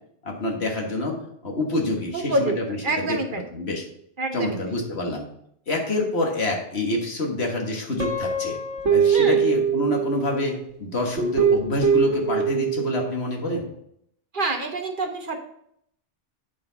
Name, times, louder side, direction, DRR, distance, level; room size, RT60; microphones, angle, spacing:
voice 1, 0.2-3.8 4.3-5.3 5.7-8.6 8.9-13.7, left 2 dB, 65° left, 0 dB, 1.9 m, -27 dB
voice 2, 2.1-2.5 2.8-3.4 4.2-4.7 9.1-9.4 14.3-15.4, right 2 dB, 50° right, 5 dB, 1.1 m, -26 dB
Guitar, 8.0-10.5 11.2-13.1, right 6 dB, 90° right, 1.4 m, -22 dB
8.4 x 6.8 x 4.0 m, 0.71 s
omnidirectional pair, 1.2 m